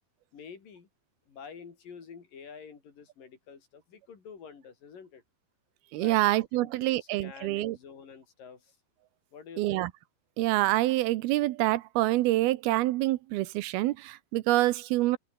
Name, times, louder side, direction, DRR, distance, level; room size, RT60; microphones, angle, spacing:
voice 1, 0.3-0.9 1.3-5.2 6.0-6.2 6.5-8.8 9.3-9.9, left 6 dB, 55° left, 5.5 m, -48 dB
voice 2, 5.9-7.8 9.6-9.9 10.4-15.2, right 17 dB, 80° right, 2.6 m, -26 dB
open air
omnidirectional pair, 4.6 m